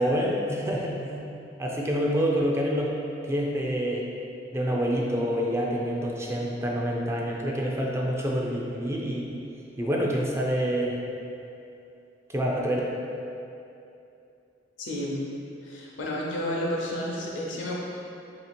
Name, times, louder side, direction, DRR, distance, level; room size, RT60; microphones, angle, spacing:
voice 1, 0.0-1.3 1.6-2.9 3.3-4.1 4.5-9.3 9.8-11.0 12.3-12.8, equal, 15° right, -3 dB, 0.4 m, -27 dB
voice 2, 14.8-15.2 15.6-17.7, left 1 dB, 80° left, -3 dB, 0.7 m, -31 dB
3.2 x 2.8 x 4.3 m, 2.7 s
head